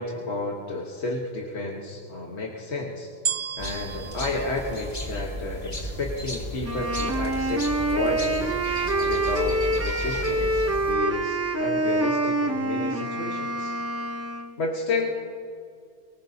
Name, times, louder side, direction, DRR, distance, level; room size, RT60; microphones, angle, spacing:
voice 1, 0.0-3.1 3.6-8.5 9.0-13.7 14.6-15.1, left 2 dB, 80° left, -1 dB, 1.6 m, -31 dB
sound 1, 3.3-5.6 6.3-6.4, right 8 dB, 60° right, 0.8 m, -33 dB
sound 2, 3.6-10.9, left 1 dB, 40° left, 2.3 m, -34 dB
Wind instrument woodwind instrument, 6.6-14.6, right 1 dB, 15° right, 0.7 m, -26 dB
24.5 x 19.0 x 2.8 m, 2.4 s
omnidirectional pair, 1.1 m